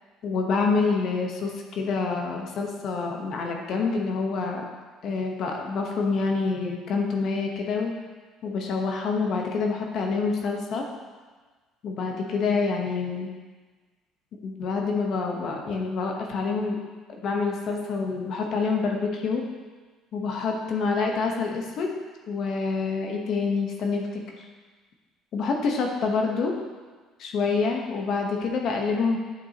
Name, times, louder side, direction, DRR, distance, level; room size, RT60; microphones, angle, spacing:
voice 1, 0.2-4.7 5.0-7.9 8.4-10.9 11.8-13.3 14.4-16.8 17.2-19.4 20.1-21.9 22.3-24.2 25.3-26.5 27.2-29.2, left 4 dB, 55° left, 1 dB, 1.0 m, -27 dB
9.1 x 5.4 x 2.9 m, 1.4 s
supercardioid pair, 100°, 0 cm